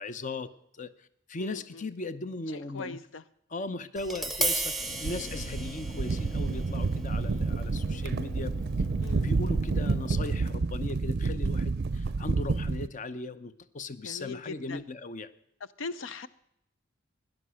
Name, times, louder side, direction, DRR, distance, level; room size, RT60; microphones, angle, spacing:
voice 1, 0.0-3.0 3.5-8.5 9.0-15.3, left 3 dB, 40° left, 14 dB, 0.7 m, -38 dB
voice 2, 1.4-1.9 2.5-3.2 9.0-9.3 14.0-14.8 15.8-16.3, left 4 dB, 85° left, 14 dB, 0.6 m, -40 dB
Tap, 4.0-10.1, right 2 dB, ahead, 0.8 m, -37 dB
sound 1, 4.8-10.5, left 2 dB, 60° left, 3.4 m, -46 dB
sound 2, 5.0-12.9, right 4 dB, 55° right, 0.5 m, -29 dB
17.0 x 11.0 x 6.3 m, 0.74 s
head